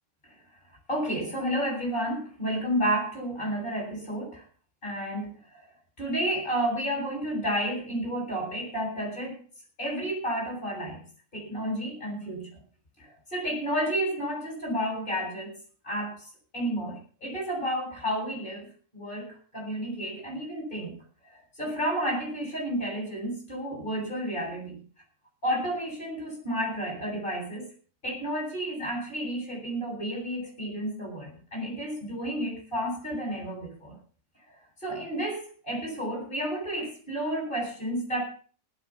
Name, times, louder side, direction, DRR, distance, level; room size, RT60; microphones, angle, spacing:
voice 1, 0.9-4.4 4.8-5.6 6.0-9.4 9.8-11.0 11.3-12.5 13.0-15.6 15.8-16.2 16.5-18.7 18.9-20.9 21.6-24.8 25.4-27.7 28.0-33.9 34.8-38.3, equal, 35° left, -1 dB, 8.0 m, -31 dB
18.0 x 8.0 x 7.3 m, 0.43 s
omnidirectional pair, 1.6 m